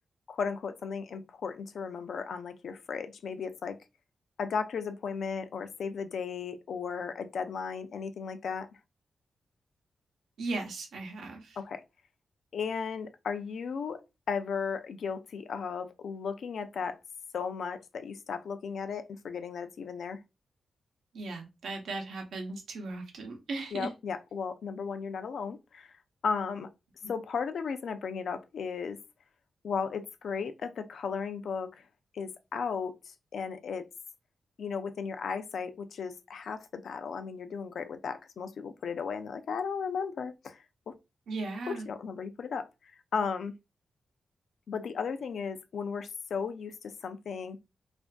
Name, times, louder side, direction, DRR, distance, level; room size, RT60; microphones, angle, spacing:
voice 1, 0.3-3.8 4.4-8.7 11.6-11.8 12.5-14.0 14.3-17.0 17.3-20.2 23.7-25.9 26.2-26.7 27.1-29.0 29.6-31.8 32.1-32.9 33.3-33.9 34.6-40.6 40.9-41.0 41.7-42.7 43.1-43.5 44.7-47.6, left 6 dB, 70° left, 0.3 m, -35 dB
voice 2, 10.4-11.6 21.1-23.9 41.3-41.9, right 3 dB, 85° right, 0.7 m, -37 dB
2.5 x 2.4 x 2.2 m
cardioid pair, 100°, 0 cm